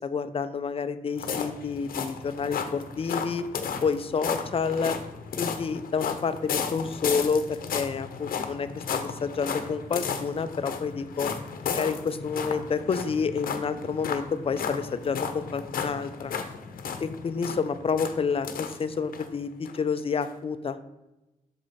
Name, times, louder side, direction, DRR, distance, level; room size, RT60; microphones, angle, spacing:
voice 1, 0.0-3.5 3.8-5.0 5.4-11.3 11.7-16.3 17.0-20.8, left 5 dB, 40° left, 11 dB, 0.5 m, -29 dB
sound 1, 1.2-19.3 19.7-19.8 20.2-20.3, left 6 dB, 85° left, 0.8 m, -34 dB
6.7 x 4.9 x 4.1 m, 0.99 s
cardioid pair, 110°, 15 cm